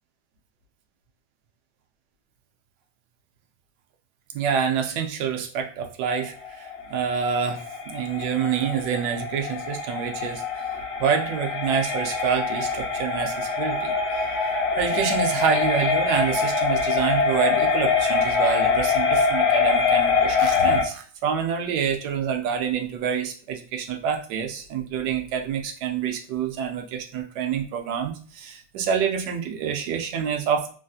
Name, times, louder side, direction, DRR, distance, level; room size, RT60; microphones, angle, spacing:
voice 1, 4.3-10.7 11.0-14.3 14.8-30.7, right 7 dB, 85° right, 4 dB, 1.2 m, -27 dB
sound 1, 6.2-20.8, left 5 dB, 70° left, 0.6 m, -24 dB
3.2 x 2.6 x 2.3 m, 0.43 s
omnidirectional pair, 1.8 m